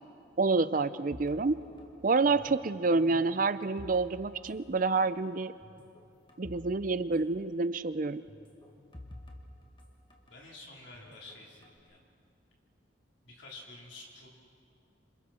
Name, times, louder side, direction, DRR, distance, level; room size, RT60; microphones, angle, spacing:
voice 1, 0.4-1.6 2.0-5.5 6.4-8.2, right 3 dB, 45° right, 14 dB, 0.5 m, -28 dB
sound 1, 1.1-2.7 2.9-4.5 4.8-5.0 5.6-6.7 7.0-7.1 8.3-10.4 10.9-11.8, left 1 dB, 25° left, 1.7 m, -50 dB
voice 2, 10.3-12.0 13.2-14.3, left 2 dB, 65° left, -2 dB, 3.8 m, -50 dB
27.0 x 27.0 x 4.4 m, 2.3 s
head